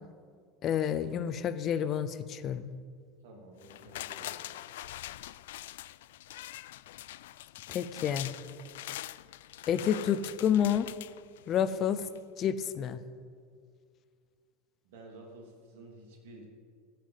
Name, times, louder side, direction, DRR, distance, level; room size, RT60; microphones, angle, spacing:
voice 1, 0.6-2.7 7.7-8.3 9.7-10.9 11.5-12.1 12.4-13.0, left 9 dB, 25° left, 13 dB, 0.5 m, -29 dB
voice 2, 3.2-4.7 14.8-16.5, right 2 dB, 75° right, 0 dB, 2.9 m, -51 dB
sound 1, 3.6-11.8 12.2-12.3, left 14 dB, 85° left, 0.3 m, -44 dB
15.5 x 5.9 x 7.3 m, 2.1 s
supercardioid pair, 170°, 0 cm